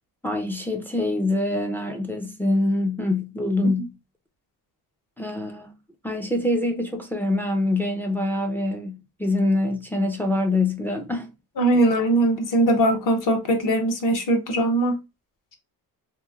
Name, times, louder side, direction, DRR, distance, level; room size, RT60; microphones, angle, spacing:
voice 1, 0.2-4.0 5.2-5.7 6.0-11.3, left 2 dB, 5° left, 0.3 m, -25 dB
voice 2, 11.6-15.0, right 1 dB, 50° left, 0.8 m, -20 dB
3.0 x 2.5 x 2.4 m
cardioid pair, 130°, 40 cm